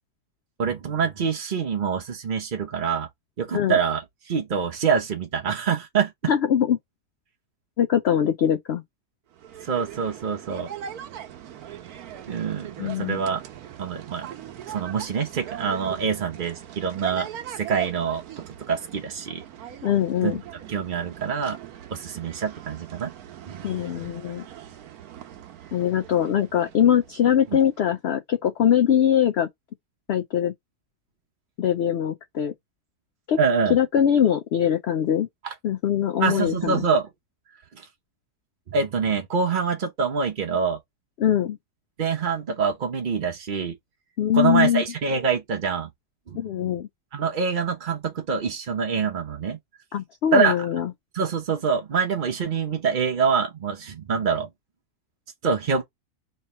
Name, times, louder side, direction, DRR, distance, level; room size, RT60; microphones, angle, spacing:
voice 1, 0.6-3.1 3.4-6.3 9.6-10.7 12.3-13.4 13.8-14.3 14.7-17.3 17.6-18.2 18.6-19.4 20.2-20.3 20.7-21.6 21.9-23.1 23.4-23.7 24.0-24.1 33.4-33.7 35.4-35.5 36.2-37.1 37.7-37.9 38.7-40.8 42.0-43.8 44.3-45.9 46.3-46.4 47.1-49.6 50.3-50.6 51.1-54.5 55.4-55.8, right 6 dB, 45° right, 0.7 m, -25 dB
voice 2, 6.3-6.8 7.8-8.8 12.8-13.2 19.8-20.4 23.6-24.4 25.7-29.5 30.1-30.5 31.6-32.5 33.3-33.4 33.7-35.3 35.6-36.8 41.2-41.6 44.2-44.8 46.3-46.9 49.9-50.9, left 9 dB, 85° left, 0.5 m, -22 dB
sound 1, 9.3-27.8, right 10 dB, 75° right, 1.2 m, -40 dB
3.2 x 3.0 x 4.1 m
omnidirectional pair, 1.7 m